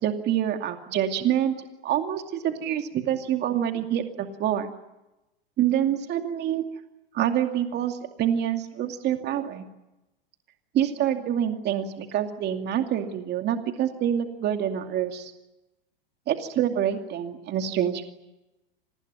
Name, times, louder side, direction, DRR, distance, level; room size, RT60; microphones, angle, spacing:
voice 1, 0.0-4.7 5.6-6.7 7.1-9.6 10.7-15.3 16.3-18.0, right 10 dB, 35° right, 5 dB, 2.5 m, -26 dB
26.0 x 20.0 x 9.3 m, 0.99 s
hypercardioid pair, 115°, 29 cm